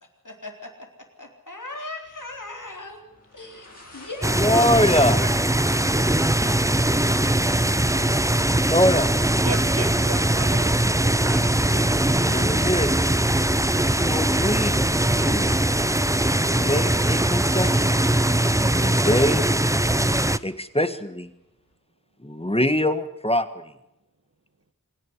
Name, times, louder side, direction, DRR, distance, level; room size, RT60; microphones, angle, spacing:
voice 1, 0.2-0.9 1.2-3.0 3.3-3.7 3.9-5.4, left 2 dB, 70° left, 3 dB, 4.0 m, -38 dB
sound 1, 2.0-21.7, left 1 dB, 50° left, 6.5 m, -52 dB
sound 2, 4.2-20.4, right 1 dB, 10° right, 0.7 m, -21 dB
voice 2, 4.4-5.2 8.6-9.1 12.1-13.2 13.9-14.8 15.1-15.5 16.4-17.9 18.6-19.5 20.4-21.3 22.2-23.6, left 1 dB, 20° left, 11 dB, 1.6 m, -24 dB
voice 3, 9.4-10.7 11.0-11.8, right 3 dB, 50° right, 12 dB, 1.6 m, -35 dB
25.5 x 10.5 x 9.7 m, 0.86 s
wide cardioid pair, 40°, 33 cm